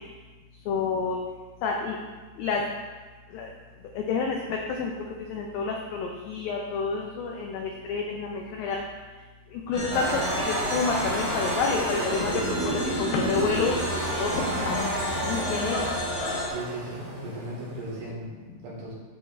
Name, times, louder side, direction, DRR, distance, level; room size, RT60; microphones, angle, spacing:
voice 1, 0.7-1.2 1.6-2.0 2.4-2.6 3.3-3.5 3.9-4.9 5.3-8.8 9.5-12.3 12.6-13.7 14.2-15.8, left 5 dB, 85° left, 1 dB, 2.0 m, -29 dB
sound 1, 9.7-16.5, left 1 dB, 55° left, 2.1 m, -32 dB
sound 2, 9.9-18.1, right 2 dB, 85° right, 0.8 m, -31 dB
voice 2, 16.4-18.3 18.6-18.9, right 1 dB, 70° right, -5 dB, 3.9 m, -36 dB
13.0 x 4.9 x 2.6 m, 1.3 s
omnidirectional pair, 4.9 m